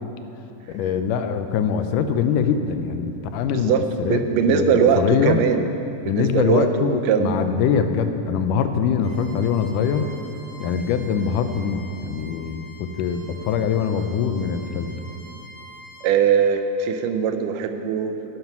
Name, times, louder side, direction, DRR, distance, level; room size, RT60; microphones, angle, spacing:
voice 1, 0.7-4.2 4.5-5.4 6.0-10.1 10.6-14.9, left 7 dB, 85° left, 8 dB, 2.3 m, -23 dB
voice 2, 3.5-5.6 6.1-7.6 16.0-18.4, right 7 dB, 85° right, 7 dB, 2.3 m, -21 dB
Bowed string instrument, 9.0-16.1, equal, 50° right, 3.9 m, -45 dB
12.0 x 11.0 x 6.1 m, 2.8 s
omnidirectional pair, 3.6 m